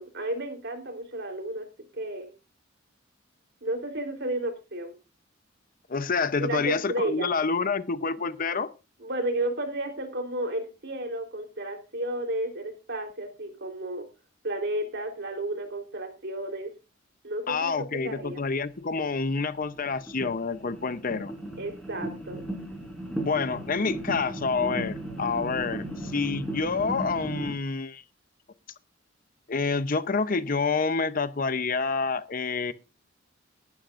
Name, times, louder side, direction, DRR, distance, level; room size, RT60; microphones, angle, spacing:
voice 1, 0.0-1.7 1.9-2.3 3.6-5.0 6.4-7.3 9.0-14.0 14.4-16.7 17.2-18.4 21.6-22.5, right 1 dB, 60° right, 3.6 m, -32 dB
voice 2, 5.9-8.7 17.5-21.3 23.2-28.0 29.5-32.7, left 4 dB, 45° left, 0.8 m, -28 dB
sound 1, 18.8-18.9 19.7-27.5, right 1 dB, ahead, 5.8 m, -36 dB
19.5 x 12.0 x 2.5 m
head